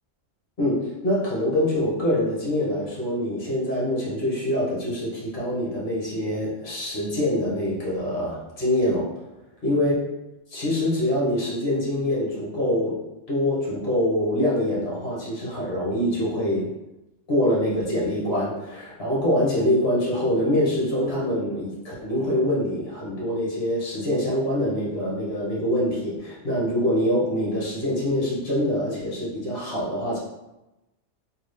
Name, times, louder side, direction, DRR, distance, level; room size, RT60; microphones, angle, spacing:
voice 1, 0.6-9.1 9.6-10.0 10.5-13.0 13.3-16.7 17.3-30.2, left 1 dB, 50° left, -6 dB, 1.5 m, -24 dB
3.7 x 2.7 x 3.2 m, 0.98 s
omnidirectional pair, 1.3 m